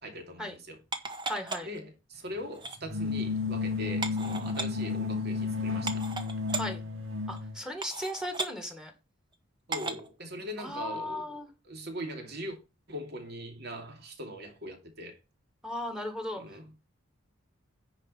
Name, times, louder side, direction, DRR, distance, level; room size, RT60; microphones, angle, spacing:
voice 1, 0.0-0.8 1.6-6.1 9.7-11.4 11.6-12.6 12.9-15.2 16.4-16.7, equal, 55° right, 2.7 m, -41 dB
sound 1, 0.9-1.8 2.5-2.8 4.0-4.7 5.4-5.5 5.9-6.6 7.3-7.4 7.8-8.5 9.7-10.1 10.7-10.8, right 3 dB, 25° right, 1.1 m, -35 dB
voice 2, 1.3-1.7 6.5-6.8 7.3-8.9 10.6-11.5 15.6-16.6, left 1 dB, 5° right, 1.9 m, -36 dB
sound 2, 2.8-7.6, left 4 dB, 75° right, 1.7 m, -32 dB
9.8 x 5.0 x 5.6 m
head